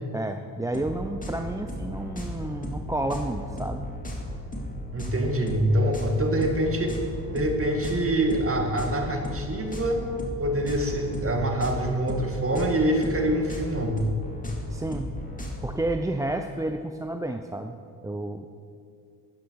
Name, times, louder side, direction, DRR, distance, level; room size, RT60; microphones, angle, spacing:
voice 1, 0.1-3.8 14.7-15.1 15.6-17.8 18.0-18.5, right 1 dB, 10° right, 6 dB, 0.5 m, -31 dB
sound 1, 0.7-15.7, left 1 dB, 20° left, 2.3 m, -35 dB
voice 2, 4.9-7.0 7.3-10.0 10.4-14.0, right 1 dB, 30° right, 3 dB, 2.0 m, -25 dB
13.0 x 9.3 x 4.6 m, 2.3 s
supercardioid pair, 65°, 45 cm